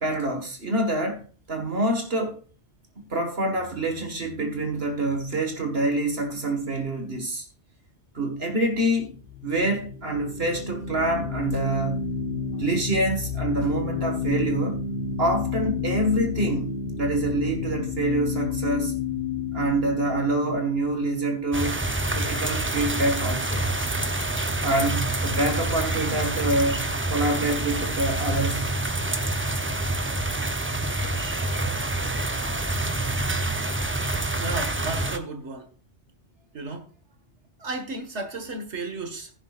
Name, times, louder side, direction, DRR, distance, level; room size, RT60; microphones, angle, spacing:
voice 1, 0.0-2.4 3.1-7.4 8.1-9.2 9.4-12.1 12.5-14.8 15.2-19.0 19.5-21.8 22.1-23.6 24.6-28.7, right 1 dB, 60° right, 2.0 m, -26 dB
sound 1, 8.9-22.1, left 5 dB, 55° left, 1.2 m, -31 dB
sound 2, 21.5-35.2, right 2 dB, 15° right, 0.6 m, -27 dB
voice 2, 34.4-35.7 36.5-36.9 37.6-39.3, right 2 dB, 80° right, 2.1 m, -34 dB
14.5 x 11.0 x 2.5 m
omnidirectional pair, 1.2 m